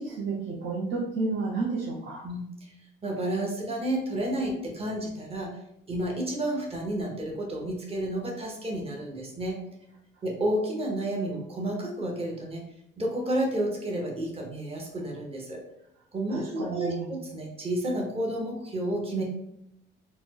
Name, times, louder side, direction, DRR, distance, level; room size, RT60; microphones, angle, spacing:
voice 1, 0.0-2.2 16.3-17.1, right 3 dB, 65° right, -3 dB, 0.7 m, -31 dB
voice 2, 3.0-5.6 5.9-9.6 10.2-12.7 13.0-15.6 16.1-19.2, right 1 dB, 30° right, -1 dB, 1.0 m, -31 dB
4.1 x 2.1 x 2.9 m, 0.80 s
cardioid pair, 90°, 20 cm